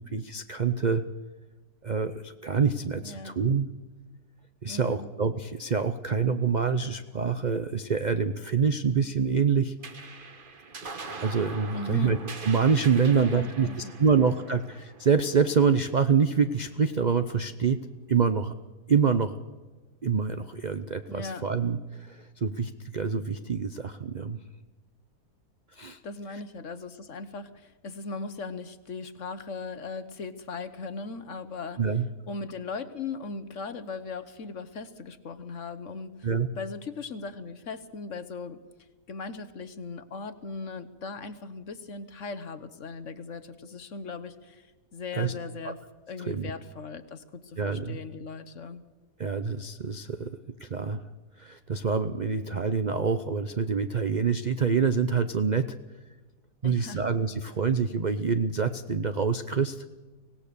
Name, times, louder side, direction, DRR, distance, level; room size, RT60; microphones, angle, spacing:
voice 1, 0.1-1.0 1.8-3.7 4.6-9.7 11.2-12.2 12.4-13.7 14.0-17.8 18.1-18.5 18.9-19.3 20.0-24.4 25.8-26.0 31.8-32.0 36.2-36.5 45.2-45.3 45.7-45.8 46.3-46.5 47.6-48.0 49.2-50.3 50.6-51.0 51.4-55.8 56.6-59.8, right 5 dB, 55° right, 10 dB, 0.5 m, -26 dB
voice 2, 3.0-3.3 4.7-5.1 11.7-12.2 13.0-13.9 14.4-14.6 21.1-21.4 26.0-32.0 32.3-36.3 36.6-38.6 39.1-45.8 46.1-48.8 56.6-57.1, left 4 dB, 50° left, 12 dB, 1.3 m, -38 dB
sound 1, 9.8-16.6, right 4 dB, 35° right, 1.2 m, -43 dB
24.5 x 17.5 x 6.8 m, 1.3 s
omnidirectional pair, 1.8 m